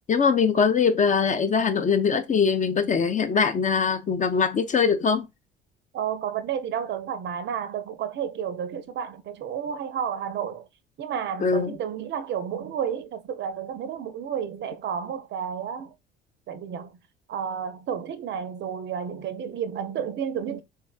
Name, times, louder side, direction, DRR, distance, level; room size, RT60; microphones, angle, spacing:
voice 1, 0.1-5.3 11.4-11.7, left 5 dB, 25° left, 0.5 m, -22 dB
voice 2, 5.9-10.7 11.0-15.9 16.5-16.9 17.3-20.6, right 8 dB, 40° right, 0.5 m, -31 dB
3.6 x 3.1 x 2.2 m
figure-of-eight pair, 55°, 29 cm